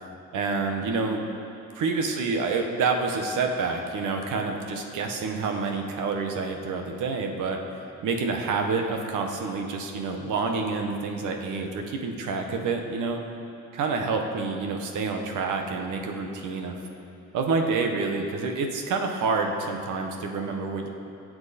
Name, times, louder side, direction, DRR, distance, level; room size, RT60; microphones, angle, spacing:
voice 1, 0.3-1.3 1.7-7.6 8.0-13.2 13.7-16.7 17.3-20.9, right 4 dB, 85° right, 3 dB, 1.4 m, -28 dB
22.0 x 7.7 x 4.3 m, 2.8 s
cardioid pair, 90°, 30 cm